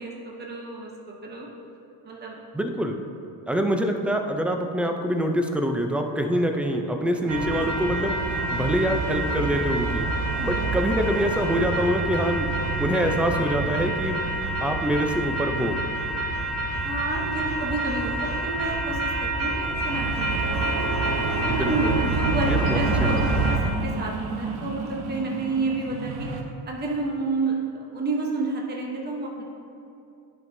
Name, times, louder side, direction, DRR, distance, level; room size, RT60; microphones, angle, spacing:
voice 1, 0.0-1.5 2.0-2.4 10.4-10.8 16.8-20.7 21.3-26.3 26.7-29.4, right 2 dB, 25° right, -1 dB, 0.9 m, -30 dB
voice 2, 2.5-3.0 3.5-8.1 8.5-10.1 10.4-12.5 12.8-14.2 14.6-15.8 21.5-22.0 22.5-23.2, equal, 5° right, 4 dB, 0.4 m, -25 dB
sound 1, 7.3-23.6, right 2 dB, 90° right, 1.4 m, -27 dB
sound 2, 19.9-26.4, right 4 dB, 65° right, 0.8 m, -33 dB
10.5 x 5.5 x 2.7 m, 2.7 s
cardioid pair, 110°, 42 cm